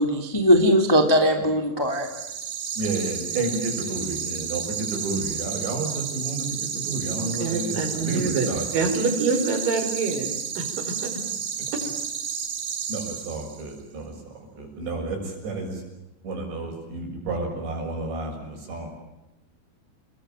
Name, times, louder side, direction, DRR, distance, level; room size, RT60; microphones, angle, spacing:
voice 1, 0.0-2.1, equal, 10° left, 5 dB, 1.6 m, -19 dB
sound 1, 1.9-13.7, right 7 dB, 85° right, 6.1 m, -32 dB
voice 2, 2.8-9.2 12.9-14.2 14.4-15.8 16.2-18.9, right 3 dB, 65° right, 2 dB, 8.8 m, -31 dB
voice 3, 7.2-8.5 8.7-10.6 11.0-11.1, right 4 dB, 45° right, 5 dB, 6.4 m, -26 dB
29.0 x 22.0 x 9.1 m, 0.97 s
omnidirectional pair, 5.4 m